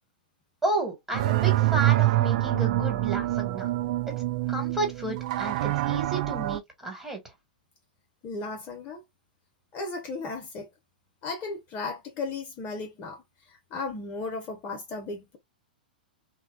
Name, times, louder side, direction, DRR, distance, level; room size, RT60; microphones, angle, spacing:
voice 1, 0.6-3.7 4.5-7.2, right 2 dB, 10° right, 1.5 m, -32 dB
sound 1, 1.1-6.6, right 15 dB, 50° right, 0.3 m, -25 dB
voice 2, 8.2-9.0 9.7-10.7 11.2-13.2 13.7-15.4, left 3 dB, 30° left, 0.9 m, -35 dB
3.1 x 2.3 x 2.4 m
figure-of-eight pair, 105°, 5 cm